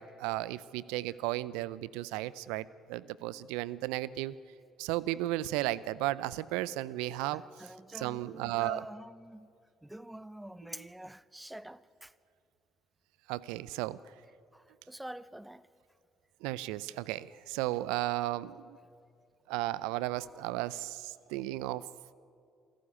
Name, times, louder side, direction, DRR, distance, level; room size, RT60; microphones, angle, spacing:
voice 1, 0.0-4.3 4.8-8.9 10.7-10.9 13.3-14.0 16.4-18.8 19.5-21.9, right 16 dB, 75° right, 0.5 m, -34 dB
voice 2, 7.3-9.5 9.8-12.1 14.5-15.7 20.2-20.3, right 1 dB, 10° right, 0.8 m, -46 dB
27.0 x 13.0 x 9.8 m
hypercardioid pair, 50°, 0 cm